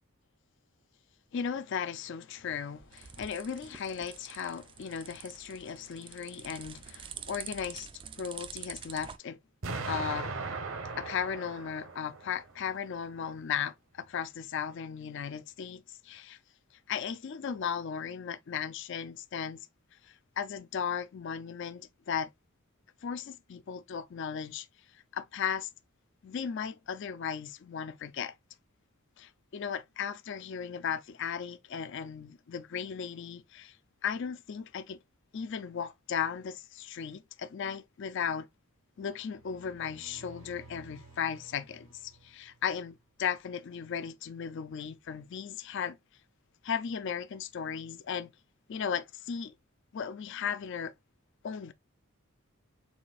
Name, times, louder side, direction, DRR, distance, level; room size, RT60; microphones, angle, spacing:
voice 1, 1.3-7.9 8.2-9.4 9.9-10.3 11.0-16.4 16.9-19.6 20.0-22.3 23.0-24.7 25.1-25.7 26.2-28.3 29.2-33.8 34.0-35.0 35.3-38.5 39.0-46.0 46.6-48.3 48.7-49.5 49.9-50.9 51.4-51.7, left 7 dB, 55° left, 0.4 m, -36 dB
sound 1, 2.4-9.2, right 8 dB, 25° right, 0.3 m, -46 dB
Explosion, 9.6-12.6, right 3 dB, 65° right, 0.9 m, -38 dB
sound 2, 39.1-43.0, right 3 dB, 90° right, 2.1 m, -55 dB
7.0 x 2.6 x 2.3 m
head